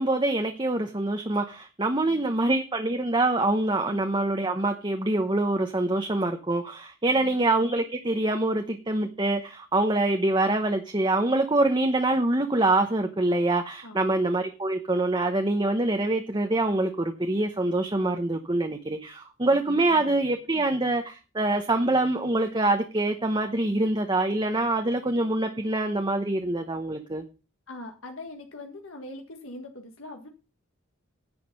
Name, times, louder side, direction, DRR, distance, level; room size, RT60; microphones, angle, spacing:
voice 1, 0.0-27.2, right 2 dB, 20° right, 0.9 m, -25 dB
voice 2, 2.0-2.5 3.9-4.0 7.1-7.4 13.8-14.2 19.8-20.0 27.7-30.3, left 2 dB, 80° left, 1.6 m, -42 dB
10.5 x 8.3 x 5.3 m
head